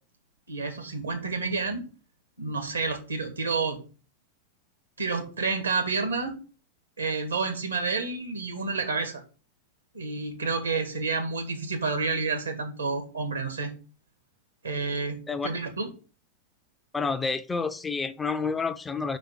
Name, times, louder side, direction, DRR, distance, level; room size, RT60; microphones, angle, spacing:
voice 1, 0.5-1.9 2.4-3.8 5.0-6.4 7.0-9.2 9.9-13.7 14.6-15.9, right 4 dB, 75° right, 6 dB, 1.7 m, -29 dB
voice 2, 16.9-19.2, left 4 dB, 10° left, 10 dB, 0.5 m, -29 dB
5.1 x 4.9 x 6.2 m, 0.36 s
figure-of-eight pair, 90°, 0 cm